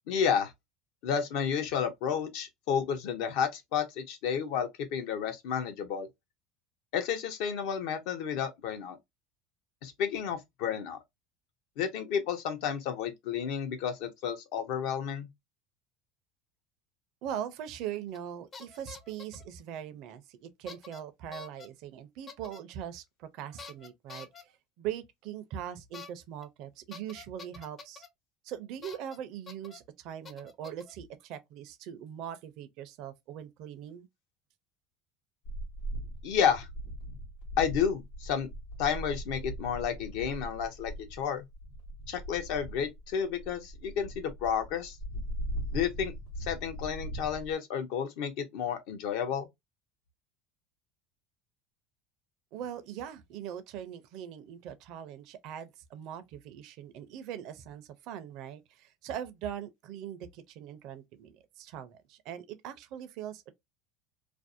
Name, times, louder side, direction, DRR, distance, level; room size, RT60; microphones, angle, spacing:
voice 1, 0.1-0.5 1.0-6.1 6.9-9.0 9.8-11.0 11.8-15.3 36.2-36.7 37.6-38.5 38.8-41.4 42.1-45.0 45.7-46.1 46.4-49.5, left 7 dB, 70° left, 0.7 m, -31 dB
voice 2, 17.2-28.1 28.4-34.1 52.5-63.5, right 10 dB, 60° right, 0.5 m, -41 dB
sound 1, 18.1-18.3 18.5-19.4 20.7-21.0 21.3-21.7 22.3-22.6 23.6-24.4 25.9-26.1 26.4-26.5 26.9-28.1 28.8-29.2 29.5-29.8 30.2-30.9, left 5 dB, 30° left, 0.5 m, -47 dB
sound 2, 35.4-47.5, right 1 dB, 90° left, 1.0 m, -40 dB
2.5 x 2.0 x 2.5 m
supercardioid pair, 115°, 0 cm